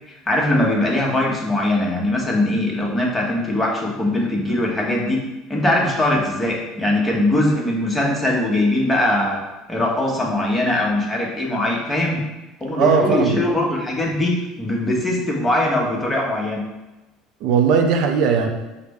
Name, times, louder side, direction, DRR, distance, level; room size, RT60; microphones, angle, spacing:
voice 1, 0.1-5.2 5.5-12.2 12.6-16.6, left 1 dB, 15° left, -2 dB, 1.0 m, -21 dB
voice 2, 12.7-13.3 17.4-18.5, right 6 dB, 70° right, 4 dB, 0.5 m, -18 dB
4.8 x 2.1 x 3.5 m, 1.1 s
supercardioid pair, 95°, 0 cm